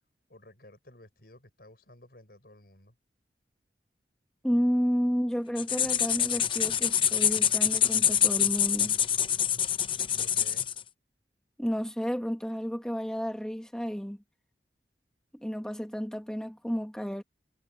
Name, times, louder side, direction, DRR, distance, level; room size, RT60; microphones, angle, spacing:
voice 1, 0.3-2.9 10.0-10.7, left 1 dB, 60° left, 5.8 m, -54 dB
voice 2, 4.4-9.0 11.6-14.2 15.4-17.2, equal, 5° left, 1.6 m, -31 dB
sound 1, 5.6-10.8, left 9 dB, 30° left, 0.7 m, -26 dB
head